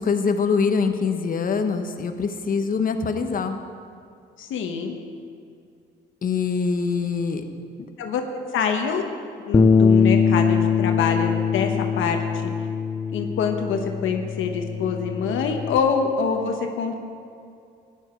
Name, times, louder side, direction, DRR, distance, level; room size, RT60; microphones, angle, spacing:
voice 1, 0.0-3.6 6.2-7.4 7.8-7.9, left 5 dB, 45° left, 7 dB, 1.1 m, -24 dB
voice 2, 4.4-5.0 8.0-8.2 8.5-9.0 9.5-12.5 13.1-17.0, left 6 dB, 85° left, 4 dB, 1.2 m, -25 dB
Bass guitar, 9.5-15.8, left 6 dB, 20° left, 0.7 m, -22 dB
14.5 x 10.5 x 4.6 m, 2.4 s
cardioid pair, 90°, 20 cm